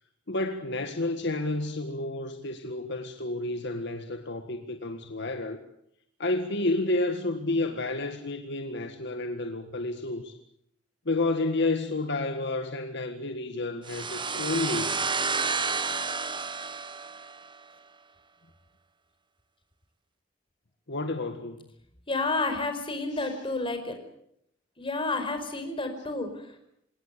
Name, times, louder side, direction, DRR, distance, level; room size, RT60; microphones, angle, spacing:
voice 1, 0.3-5.6 6.2-10.4 11.1-15.1 20.9-21.7 23.1-23.3, left 2 dB, 65° left, 1.8 m, -30 dB
sound 1, 13.9-17.6, right 4 dB, 25° right, 1.3 m, -30 dB
voice 2, 22.1-23.9 24.8-26.6, left 3 dB, 25° left, 4.9 m, -30 dB
27.5 x 18.0 x 8.5 m
head